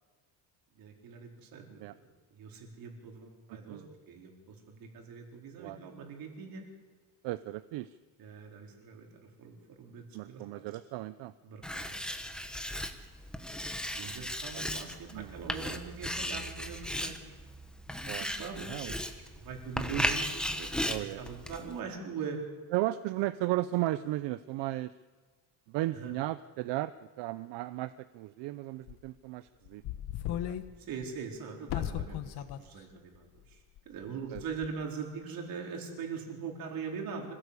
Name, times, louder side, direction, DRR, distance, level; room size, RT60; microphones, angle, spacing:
voice 1, 0.8-1.8 2.3-6.7 8.2-10.6 11.4-12.2 12.4-12.5 13.9-17.3 18.2-22.4 25.9-26.1 30.8-37.3, right 5 dB, 55° right, 2 dB, 4.4 m, -42 dB
voice 2, 3.5-3.9 5.6-5.8 7.2-8.0 10.1-11.3 13.9-14.1 14.5-14.6 15.1-15.4 18.1-18.2 18.7-18.9 20.9-21.2 22.7-24.9 25.7-29.8 30.3-30.6 34.3-34.4, right 16 dB, 80° right, 14 dB, 0.7 m, -35 dB
Writing, 11.6-21.8, left 1 dB, ahead, 1.2 m, -36 dB
sound 1, 28.9-29.0 29.6-30.7 31.0-31.1 31.7-32.6 32.9-33.0 33.8-34.0 34.3-34.7, left 11 dB, 65° left, 1.5 m, -36 dB
26.0 x 17.0 x 8.3 m, 1.4 s
cardioid pair, 175°, 42 cm